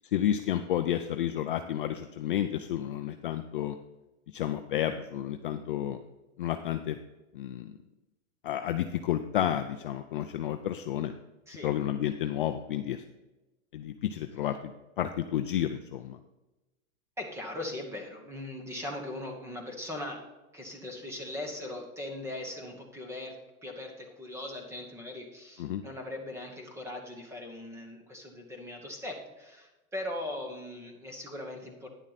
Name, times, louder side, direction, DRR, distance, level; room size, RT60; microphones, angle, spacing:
voice 1, 0.0-3.8 4.3-6.0 6.4-7.0 7.3-7.7 8.4-11.1 11.6-13.0 13.7-16.2 25.6-25.8, left 11 dB, 40° left, 7 dB, 0.4 m, -31 dB
voice 2, 17.2-20.2 20.5-31.9, left 1 dB, 5° right, 2 dB, 1.2 m, -40 dB
10.5 x 7.3 x 4.1 m, 1.1 s
supercardioid pair, 160°, 43 cm